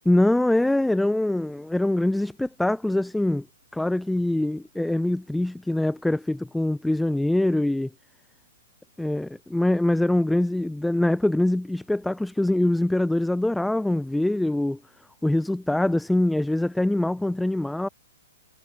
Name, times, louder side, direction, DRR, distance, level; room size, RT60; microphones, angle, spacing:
voice 1, 0.1-3.5 3.7-7.9 9.0-14.8 15.2-17.9, left 1 dB, 5° left, 0.7 m, -23 dB
figure-of-eight pair, 120°, 0 cm